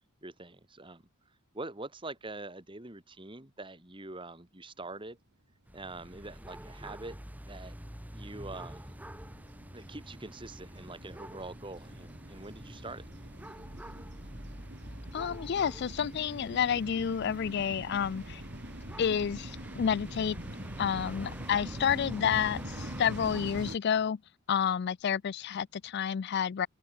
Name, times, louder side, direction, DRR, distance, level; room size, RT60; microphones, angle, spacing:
voice 1, 0.2-1.0 1.5-5.2 5.7-7.2 7.5-7.8 8.1-9.0 9.7-13.1, right 2 dB, 25° right, 1.9 m, -44 dB
sound 1, 5.7-23.8, equal, 5° right, 1.5 m, -46 dB
sound 2, 6.0-23.8, right 1 dB, 50° right, 5.3 m, -45 dB
voice 2, 15.1-18.4 19.0-20.4 20.8-24.2 24.5-26.7, left 7 dB, 50° left, 0.3 m, -30 dB
open air
head